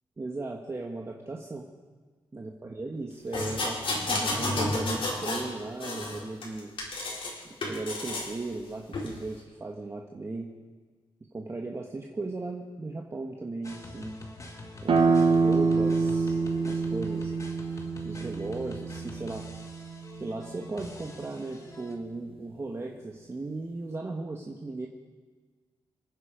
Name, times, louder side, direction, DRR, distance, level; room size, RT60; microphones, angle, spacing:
voice 1, 0.2-1.7 2.3-3.8 4.1-6.7 7.7-10.5 11.3-14.2 14.8-17.3 18.0-19.4 20.2-24.9, right 2 dB, 25° right, 0 dB, 1.5 m, -37 dB
sound 1, 3.3-5.5 5.8-7.3 7.6-8.3 8.9-9.1, left 2 dB, 60° left, 4.6 m, -31 dB
sound 2, 13.6-21.9, left 2 dB, 30° left, 2.1 m, -45 dB
sound 3, 14.9-20.3, right 4 dB, 60° right, 1.4 m, -26 dB
27.5 x 10.0 x 5.2 m, 1.4 s
wide cardioid pair, 115°, 10 cm